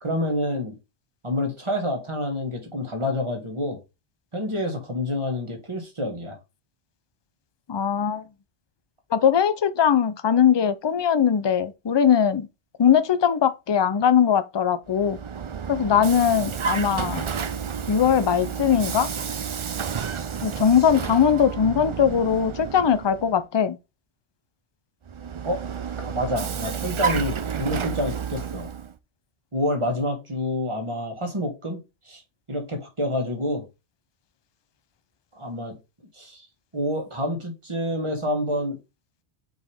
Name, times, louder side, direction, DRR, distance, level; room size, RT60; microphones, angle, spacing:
voice 1, 0.0-0.8 1.2-3.8 4.3-6.4 25.4-25.6 26.0-28.7 29.5-31.8 32.1-32.2 32.5-33.6 35.4-35.8 36.1-36.5 36.7-38.8, left 1 dB, 25° right, 1.8 m, -28 dB
voice 2, 7.7-8.3 9.1-12.5 12.8-15.2 15.7-17.3 17.9-19.1 20.4-23.8, left 8 dB, 40° left, 0.4 m, -20 dB
Vehicle, 14.9-23.4 25.1-28.9, right 6 dB, 50° right, 0.3 m, -31 dB
6.1 x 4.9 x 3.6 m
omnidirectional pair, 1.2 m